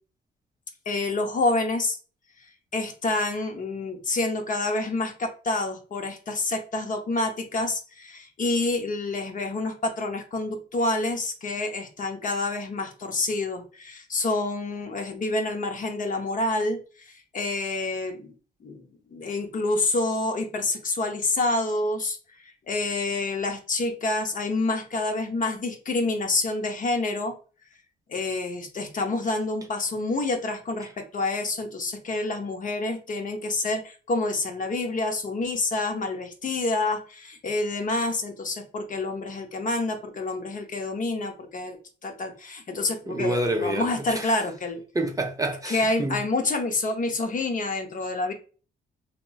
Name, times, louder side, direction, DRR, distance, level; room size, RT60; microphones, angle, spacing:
voice 1, 0.9-2.0 2.7-18.3 18.6-18.8 19.1-22.2 22.4-27.3 28.1-44.8 45.7-48.3, left 2 dB, 40° left, 0.7 m, -28 dB
voice 2, 43.1-43.8 45.0-46.2, right 1 dB, 15° right, 0.5 m, -27 dB
2.9 x 2.9 x 2.2 m
cardioid pair, 90°, 20 cm